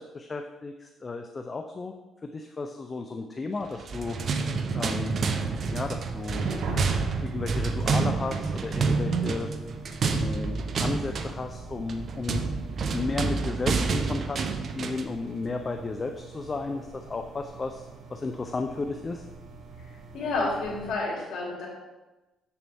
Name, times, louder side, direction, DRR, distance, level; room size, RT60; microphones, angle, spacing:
voice 1, 0.0-1.9 2.2-4.4 4.7-5.2 5.7-6.5 7.2-9.5 10.1-12.5 12.9-14.4 14.7-17.8 18.1-19.2, left 3 dB, 30° left, 5 dB, 0.5 m, -34 dB
sound 1, 3.7-15.2, right 4 dB, 55° right, 0.7 m, -28 dB
sound 2, 5.8-20.9, right 4 dB, 75° right, 1.8 m, -44 dB
voice 2, 20.1-21.7, left 3 dB, 75° left, -3 dB, 2.9 m, -29 dB
7.3 x 7.0 x 3.5 m, 1.1 s
cardioid pair, 90°, 0 cm